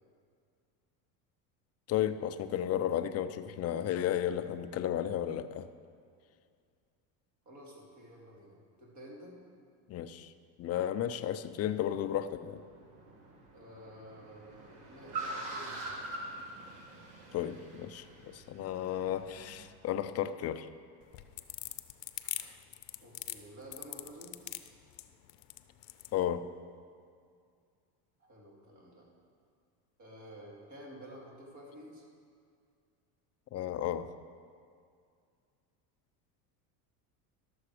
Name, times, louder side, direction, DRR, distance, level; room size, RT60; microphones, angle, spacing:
voice 1, 1.9-5.7 9.9-10.3 10.6-12.6 17.3-20.7 26.1-26.5 33.5-34.1, left 11 dB, 35° left, 12 dB, 0.4 m, -33 dB
voice 2, 7.4-9.4 13.5-16.0 23.0-24.4 28.2-29.1 30.0-32.0, equal, 35° right, -3 dB, 2.9 m, -51 dB
Car, 12.3-19.7, right 2 dB, 70° right, 2.1 m, -44 dB
sound 1, 21.0-26.1, left 17 dB, 70° left, 0.7 m, -41 dB
12.0 x 7.0 x 4.8 m, 2.2 s
supercardioid pair, 90°, 50 cm